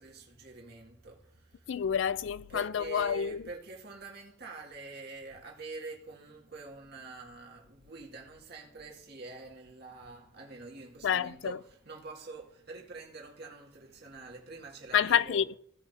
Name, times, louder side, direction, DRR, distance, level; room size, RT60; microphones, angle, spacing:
voice 1, 0.0-1.8 2.5-15.4, right 3 dB, 60° right, 2.2 m, -46 dB
voice 2, 1.7-3.4 11.0-11.6 14.9-15.6, left 8 dB, 75° left, 0.4 m, -28 dB
16.5 x 5.6 x 2.8 m
head